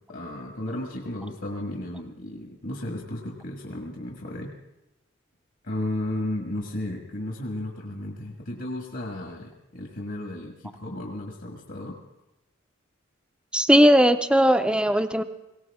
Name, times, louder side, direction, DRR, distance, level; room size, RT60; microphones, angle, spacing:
voice 1, 0.1-4.5 5.6-12.0, left 1 dB, 60° left, 1 dB, 1.7 m, -34 dB
voice 2, 13.5-15.2, equal, 5° right, 10 dB, 0.5 m, -18 dB
19.0 x 17.5 x 3.6 m, 0.96 s
head